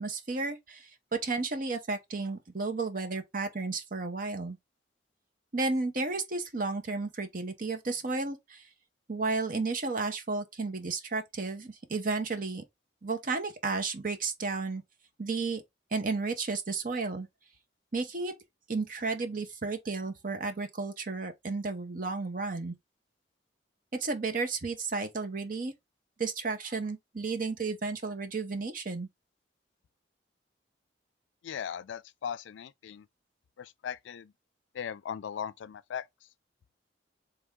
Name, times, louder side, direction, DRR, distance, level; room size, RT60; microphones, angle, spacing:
voice 1, 0.0-4.6 5.5-8.7 9.1-12.6 13.0-14.8 15.2-15.6 15.9-17.3 17.9-18.3 18.7-22.7 23.9-25.7 26.2-29.1, right 3 dB, 45° right, 0.8 m, -33 dB
voice 2, 31.4-33.1 33.6-34.3 34.7-36.1, left 8 dB, 80° left, 0.3 m, -38 dB
3.5 x 3.4 x 3.5 m
head